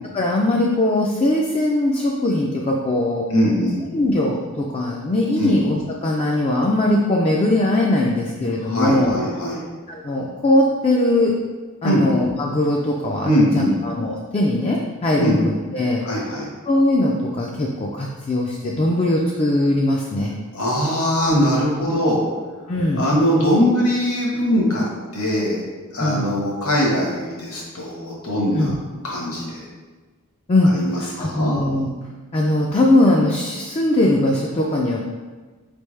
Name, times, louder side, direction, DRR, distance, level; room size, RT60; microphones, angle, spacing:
voice 1, 0.1-3.2 3.9-9.2 9.9-11.4 11.8-16.0 16.7-20.3 22.7-23.0 26.0-26.3 28.5-28.7 30.5-30.7 31.0-31.9 32.3-35.0, left 1 dB, 30° left, -2 dB, 0.4 m, -20 dB
voice 2, 3.3-3.8 5.4-5.5 8.6-9.6 11.8-12.0 13.2-13.8 15.2-15.4 16.0-16.5 20.5-22.2 22.9-24.9 25.1-25.6 25.9-28.7 29.0-29.6 30.7-31.6, equal, 70° left, -3 dB, 1.2 m, -21 dB
4.4 x 3.4 x 3.2 m, 1.3 s
head